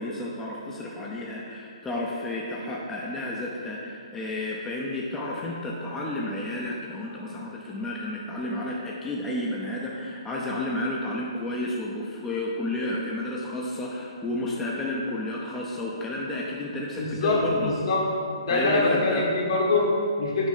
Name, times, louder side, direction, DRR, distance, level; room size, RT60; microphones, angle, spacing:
voice 1, 0.0-17.7 18.5-19.3, left 1 dB, 10° left, -4 dB, 0.5 m, -31 dB
voice 2, 17.0-18.1 18.4-20.5, left 2 dB, 55° left, -1 dB, 1.3 m, -24 dB
6.3 x 3.1 x 5.5 m, 2.3 s
hypercardioid pair, 140°, 3 cm